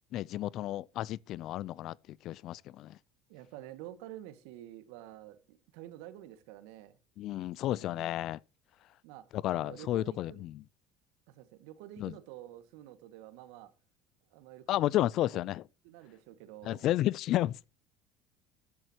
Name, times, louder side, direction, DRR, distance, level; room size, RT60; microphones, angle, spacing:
voice 1, 0.1-3.0 7.2-8.4 9.3-10.6 12.0-12.1 14.7-15.6 16.6-17.6, left 14 dB, 55° left, 0.4 m, -32 dB
voice 2, 3.3-7.0 9.0-9.3 9.5-10.4 11.3-13.7 14.3-15.1 15.8-16.9, right 13 dB, 80° right, 1.9 m, -49 dB
14.5 x 10.5 x 3.0 m
cardioid pair, 120°, 0 cm